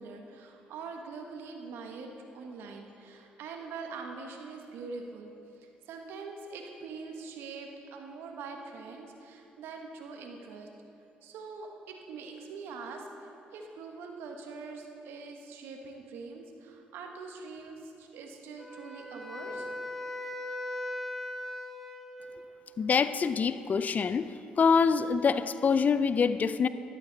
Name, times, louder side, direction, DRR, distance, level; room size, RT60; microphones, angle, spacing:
voice 1, 0.0-5.3 5.6-10.7 11.2-13.1 13.5-19.7, right 4 dB, 75° right, 3 dB, 1.4 m, -43 dB
Wind instrument woodwind instrument, 18.6-22.6, left 1 dB, 5° left, 1.6 m, -39 dB
voice 2, 22.8-24.3 24.6-26.7, left 5 dB, 45° left, 14 dB, 0.5 m, -25 dB
13.0 x 12.0 x 4.0 m, 2.9 s
supercardioid pair, 65°, 4 cm